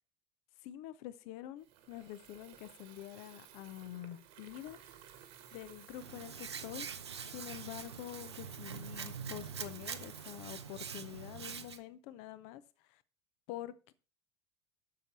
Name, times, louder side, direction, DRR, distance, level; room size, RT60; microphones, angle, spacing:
voice 1, 0.6-4.8 5.5-6.9 7.3-13.0 13.5-13.9, left 13 dB, 50° left, 0.7 m, -47 dB
Water tap faucet / Fill (with liquid), 1.6-11.8, right 10 dB, 55° right, 1.5 m, -56 dB
Hands, 6.0-11.8, right 6 dB, 80° right, 0.7 m, -44 dB
7.6 x 6.7 x 6.0 m
figure-of-eight pair, 70°, 14 cm